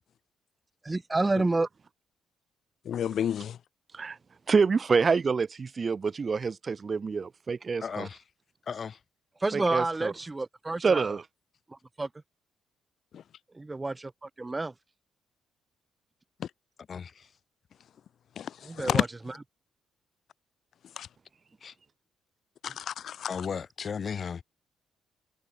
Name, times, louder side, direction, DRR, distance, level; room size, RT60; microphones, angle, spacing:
voice 1, 0.8-1.7 9.4-11.2 11.7-12.1 13.5-14.7 18.6-19.1, right 2 dB, 20° right, 6.6 m, -29 dB
voice 2, 2.8-3.6 13.1-13.2 16.4-16.5 18.3-19.1 20.9-21.1 22.6-23.5, left 9 dB, 60° left, 1.7 m, -31 dB
voice 3, 4.5-8.1 9.5-10.1 10.8-11.2, right 5 dB, 35° right, 2.6 m, -27 dB
voice 4, 7.8-8.2 8.7-9.0 16.9-17.3 21.6-21.7 23.3-24.4, left 6 dB, 45° left, 5.0 m, -35 dB
cardioid pair, 90°, 0 cm